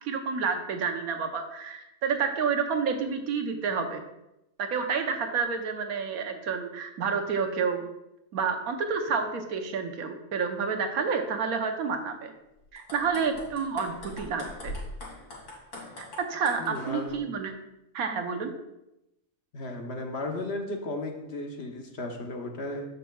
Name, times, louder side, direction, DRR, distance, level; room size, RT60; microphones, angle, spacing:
voice 1, 0.0-4.0 4.6-7.8 8.3-12.3 12.7-14.8 16.0-17.5 17.9-18.5, right 5 dB, 85° right, 5 dB, 1.3 m, -29 dB
sound 1, 12.6-17.1, left 1 dB, 65° left, 2.5 m, -42 dB
voice 2, 16.6-17.2 19.5-22.9, left 2 dB, 50° left, 2 dB, 1.1 m, -35 dB
13.0 x 5.6 x 2.3 m, 0.89 s
omnidirectional pair, 1.5 m